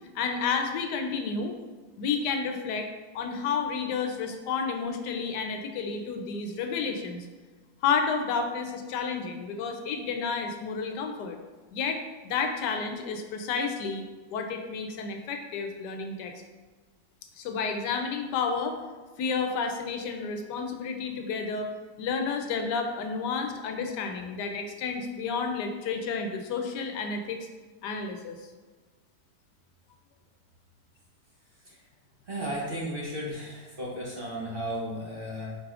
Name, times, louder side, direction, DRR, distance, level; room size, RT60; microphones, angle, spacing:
voice 1, 0.1-1.5 2.0-2.9 3.1-7.3 7.8-11.4 11.7-14.0 14.3-16.3 17.4-18.8 19.2-21.7 22.0-27.5 27.8-28.4, left 5 dB, 85° left, 5 dB, 1.2 m, -31 dB
voice 2, 32.3-35.6, equal, 40° right, -5 dB, 0.9 m, -34 dB
4.7 x 4.6 x 2.4 m, 1.4 s
omnidirectional pair, 1.8 m